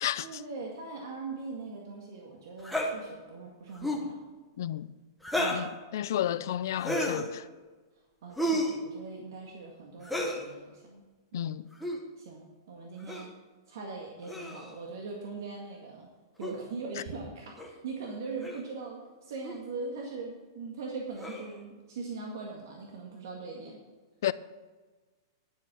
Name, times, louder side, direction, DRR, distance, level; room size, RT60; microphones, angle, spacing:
voice 1, 0.2-4.2 5.4-5.7 8.2-11.0 11.3-11.6 12.2-13.3 13.7-16.1 16.4-23.8, right 4 dB, 65° right, 1.9 m, -41 dB
sound 1, 2.6-2.9 3.7-4.1 5.2-5.7 6.8-7.3 8.4-8.8 10.0-10.4 11.7-12.0 13.1-13.3 14.3-14.7 16.4-16.5 17.6-17.7 18.4-18.6 19.4-19.6 21.2-21.6, equal, ahead, 1.0 m, -31 dB
voice 2, 4.6-4.9 5.5-7.5 11.3-11.7 24.2-24.3, left 12 dB, 60° left, 0.5 m, -32 dB
11.0 x 7.3 x 6.1 m
supercardioid pair, 170°, 2 cm